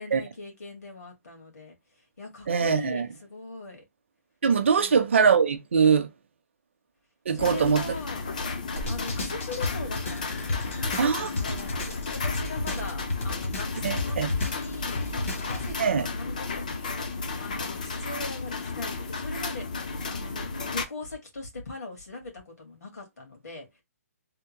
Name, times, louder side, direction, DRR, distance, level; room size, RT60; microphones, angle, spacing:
voice 1, 0.0-1.7 2.2-3.8 4.8-5.0 7.3-8.2 8.9-15.0 15.3-23.8, left 2 dB, 75° left, 1.8 m, -41 dB
voice 2, 2.5-3.1 4.4-6.1 7.3-7.8 11.0-11.3 13.8-14.3 15.8-16.1, right 6 dB, 45° right, 0.6 m, -22 dB
sound 1, 7.4-20.9, left 3 dB, 30° left, 0.3 m, -33 dB
sound 2, 8.8-15.7, left 2 dB, 50° left, 1.1 m, -33 dB
3.5 x 2.1 x 2.9 m
hypercardioid pair, 175°, 9 cm